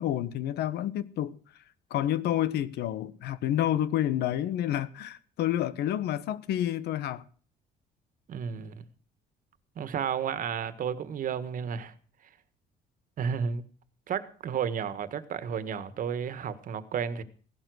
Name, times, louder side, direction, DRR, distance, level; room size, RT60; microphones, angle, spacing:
voice 1, 0.0-1.4 1.9-7.2, left 12 dB, 75° left, 1.1 m, -29 dB
voice 2, 8.3-8.8 9.7-11.9 13.2-13.6 14.1-17.2, right 7 dB, 55° right, 1.6 m, -32 dB
16.5 x 12.0 x 6.3 m
cardioid pair, 110°, 17 cm